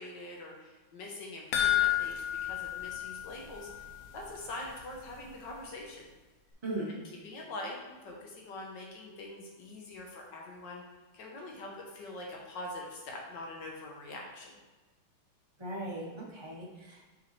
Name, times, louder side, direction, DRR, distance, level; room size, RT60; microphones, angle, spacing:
voice 1, 0.0-2.1 2.4-3.7 4.1-6.1 6.9-7.0 7.2-10.8 11.1-14.5, left 2 dB, 65° left, -1 dB, 1.6 m, -43 dB
sound 1, 1.5-4.1 4.4-4.5 4.9-5.0, left 12 dB, 85° left, 1.5 m, -31 dB
voice 2, 6.6-7.0 15.6-17.0, right 1 dB, 25° right, -3 dB, 0.6 m, -38 dB
6.2 x 5.1 x 3.2 m, 1.2 s
omnidirectional pair, 2.2 m